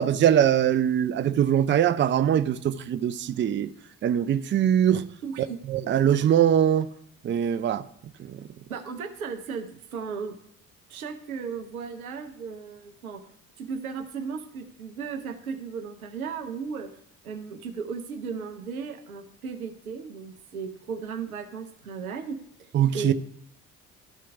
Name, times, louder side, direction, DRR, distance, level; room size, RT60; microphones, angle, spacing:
voice 1, 0.0-3.7 4.0-5.0 5.7-6.9 7.2-7.8 8.3-8.4 22.7-23.1, right 10 dB, 30° right, 0.5 m, -22 dB
voice 2, 5.2-5.6 8.7-10.3 10.9-13.2 13.6-16.9 17.2-22.4 22.9-23.1, right 5 dB, 90° right, 0.8 m, -35 dB
13.0 x 4.5 x 3.5 m
hypercardioid pair, 50°, 42 cm